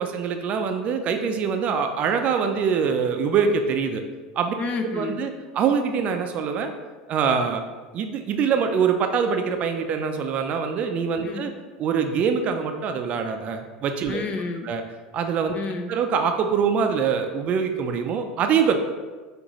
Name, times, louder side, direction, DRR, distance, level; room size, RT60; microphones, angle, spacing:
voice 1, 0.0-4.0 4.4-4.5 4.9-6.7 7.1-7.6 7.9-11.5 11.8-14.2 14.6-14.8 15.1-15.5 15.9-18.8, right 6 dB, 45° right, 6 dB, 0.5 m, -24 dB
voice 2, 4.6-5.2 11.2-11.5 14.1-14.7 15.5-16.0, left 4 dB, 40° left, 6 dB, 0.5 m, -30 dB
6.1 x 2.6 x 3.0 m, 1.3 s
hypercardioid pair, 95°, 3 cm